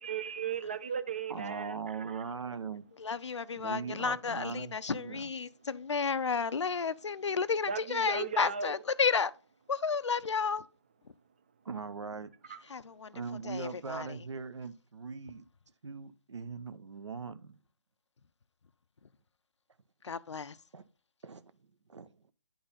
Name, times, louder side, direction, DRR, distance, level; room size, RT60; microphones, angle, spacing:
voice 1, 0.0-2.2 7.7-8.7 12.5-12.6, right 7 dB, 20° right, 0.3 m, -37 dB
voice 2, 1.3-2.8 3.5-5.2 11.6-12.3 13.1-15.4 15.8-17.6 20.7-20.8 21.2-21.5 21.9-22.2, right 5 dB, 85° right, 0.8 m, -40 dB
voice 3, 3.0-9.3 9.7-10.6 12.7-13.1 13.4-14.1 20.0-20.6, left 5 dB, 90° left, 0.6 m, -32 dB
10.0 x 3.9 x 4.0 m
hypercardioid pair, 165°, 15 cm